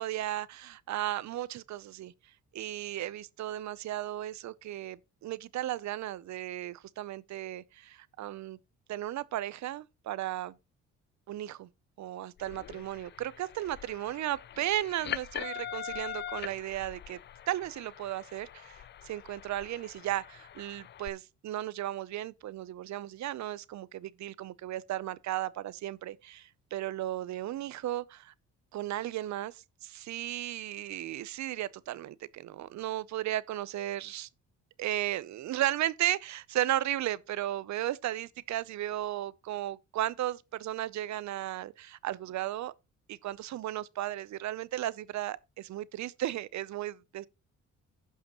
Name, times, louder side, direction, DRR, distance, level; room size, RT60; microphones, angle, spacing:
voice 1, 0.0-2.1 2.5-8.6 8.9-10.5 11.3-11.7 12.0-17.2 17.5-28.3 28.7-34.3 34.8-42.7 43.1-47.3, right 13 dB, 65° right, 0.7 m, -35 dB
sound 1, 12.4-21.1, left 10 dB, 40° left, 0.4 m, -43 dB
15.5 x 5.7 x 3.0 m
cardioid pair, 90°, 30 cm